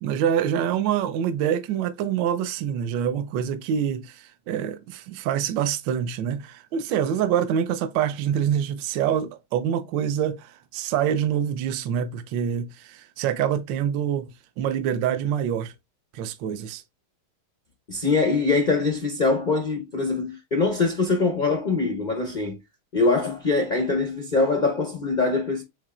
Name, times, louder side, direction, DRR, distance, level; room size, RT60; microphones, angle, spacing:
voice 1, 0.0-14.3 14.6-15.7 16.1-16.8, right 9 dB, 75° right, 1.2 m, -26 dB
voice 2, 17.9-22.6 22.9-25.6, left 3 dB, 85° left, 0.4 m, -23 dB
7.2 x 2.8 x 2.4 m
omnidirectional pair, 2.2 m